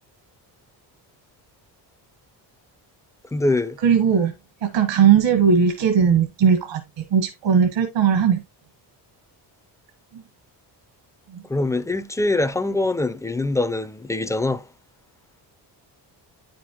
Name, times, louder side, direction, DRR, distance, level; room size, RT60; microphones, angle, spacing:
voice 1, 3.3-3.8 11.5-14.6, left 2 dB, 10° left, 0.3 m, -23 dB
voice 2, 3.8-4.3 4.6-8.4 10.1-10.2 11.3-11.4, right 7 dB, 70° right, 1.2 m, -18 dB
9.4 x 5.2 x 2.9 m
cardioid pair, 125°, 45 cm